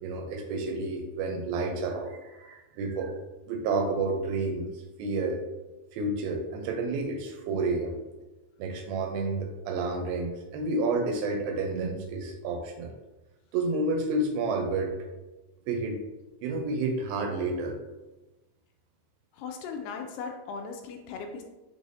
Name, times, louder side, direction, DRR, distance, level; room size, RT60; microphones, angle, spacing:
voice 1, 0.0-3.1 3.5-4.7 5.0-5.4 5.9-7.9 8.6-12.9 13.5-14.9 15.7-16.0 16.4-17.8, right 3 dB, 90° right, 3 dB, 2.5 m, -30 dB
voice 2, 19.3-21.4, left 5 dB, 80° left, 3 dB, 2.1 m, -38 dB
6.1 x 3.3 x 2.6 m, 1.1 s
omnidirectional pair, 4.1 m